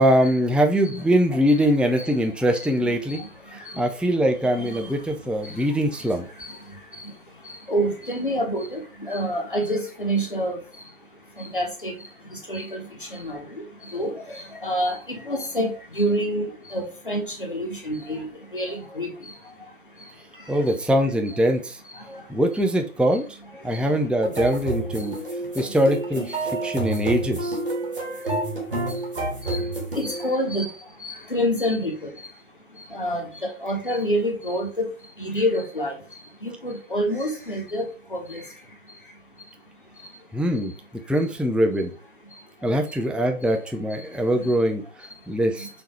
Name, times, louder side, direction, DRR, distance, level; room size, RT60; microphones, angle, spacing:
voice 1, 0.0-3.2 3.7-6.2 20.5-21.8 22.3-23.2 23.6-25.2 25.6-27.6 40.3-40.7 41.1-41.9 42.6-44.8 45.3-45.7, equal, 5° right, 4 dB, 0.3 m, -22 dB
voice 2, 2.5-3.3 3.7-3.8 4.5-4.8 6.4-6.6 7.0-7.1 7.5-10.6 11.4-11.9 12.5-12.8 13.1-13.4 13.8-18.3 18.5-19.1 22.1-22.2 23.7-23.8 26.9-27.0 29.4-29.6 29.9-30.7 31.0-32.1 32.9-33.3 33.6-34.8 35.2-35.9 36.4-37.9 38.1-38.4 45.6-45.7, equal, 35° left, 1 dB, 0.9 m, -27 dB
sound 1, 24.2-30.3, right 2 dB, 40° right, 1.3 m, -29 dB
3.6 x 3.0 x 4.1 m, 0.37 s
figure-of-eight pair, 175°, 44 cm